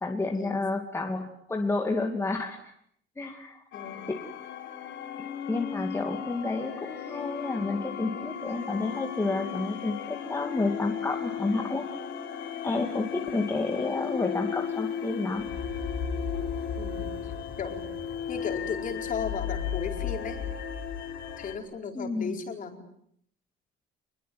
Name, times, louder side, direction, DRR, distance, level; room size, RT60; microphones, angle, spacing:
voice 1, 0.0-2.7 3.2-3.6 4.1-4.2 5.5-11.9 12.6-15.5 21.9-22.4, left 3 dB, 10° left, 2 dB, 2.5 m, -30 dB
sound 1, 3.7-21.6, left 8 dB, 65° left, 4.7 m, -35 dB
voice 2, 3.7-4.1 16.8-17.3 17.6-17.8 18.3-20.4 21.4-22.8, left 6 dB, 40° left, 5 dB, 4.4 m, -35 dB
27.0 x 21.5 x 9.4 m, 0.67 s
cardioid pair, 165°, 21 cm